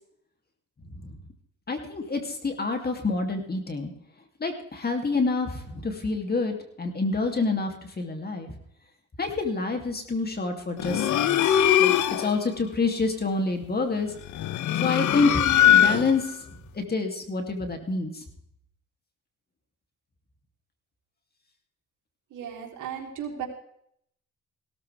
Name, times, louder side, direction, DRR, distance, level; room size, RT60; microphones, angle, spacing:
voice 1, 1.7-3.9 4.4-8.5 9.2-11.9 12.2-14.1 14.8-16.3 16.8-18.1, left 3 dB, 30° left, 4 dB, 2.9 m, -27 dB
sound 1, 10.8-12.4 14.3-16.3, left 11 dB, 75° left, 1.0 m, -21 dB
voice 2, 22.3-23.5, right 8 dB, 80° right, 0 dB, 3.6 m, -35 dB
17.0 x 14.0 x 3.5 m, 0.69 s
cardioid pair, 90°, 30 cm